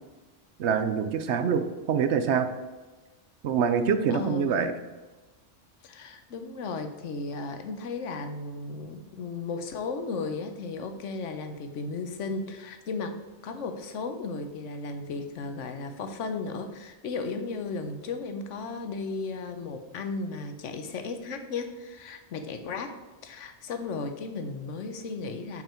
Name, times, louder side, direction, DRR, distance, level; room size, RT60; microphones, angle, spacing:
voice 1, 0.6-2.5 3.4-4.7, right 7 dB, 70° right, 10 dB, 0.9 m, -25 dB
voice 2, 4.1-4.8 5.8-25.6, left 4 dB, 75° left, 8 dB, 1.1 m, -35 dB
6.7 x 6.0 x 4.4 m, 1.2 s
omnidirectional pair, 1.3 m